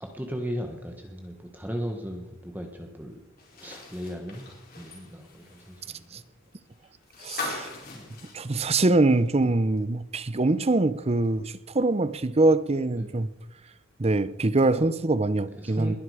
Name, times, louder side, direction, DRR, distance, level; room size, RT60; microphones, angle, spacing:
voice 1, 0.0-3.2 3.6-4.5 4.8-6.2 7.9-8.0 9.4-9.5 13.0-13.1 14.8-14.9 15.6-16.0, equal, 10° right, 1.4 m, -36 dB
sound 1, 3.4-9.4 9.8-9.9 11.2-11.3, left 3 dB, 45° left, 4.4 m, -41 dB
voice 2, 7.2-7.7 8.3-13.3 14.0-16.0, right 2 dB, 30° right, 0.6 m, -23 dB
20.5 x 11.0 x 4.9 m
head